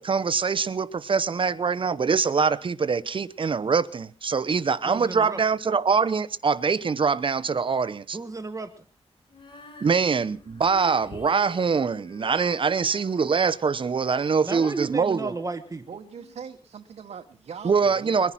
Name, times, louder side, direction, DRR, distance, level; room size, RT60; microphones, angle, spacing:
voice 1, 0.0-8.2 9.8-15.3 17.6-18.3, right 5 dB, 50° right, 0.8 m, -24 dB
voice 2, 4.8-5.4 8.1-8.8 14.4-15.8, right 3 dB, 30° right, 1.3 m, -33 dB
Female singing, 9.3-16.3, left 2 dB, 45° left, 5.9 m, -49 dB
voice 3, 15.9-18.2, right 7 dB, 85° right, 1.1 m, -41 dB
22.0 x 10.5 x 5.8 m
wide cardioid pair, 105°, 11 cm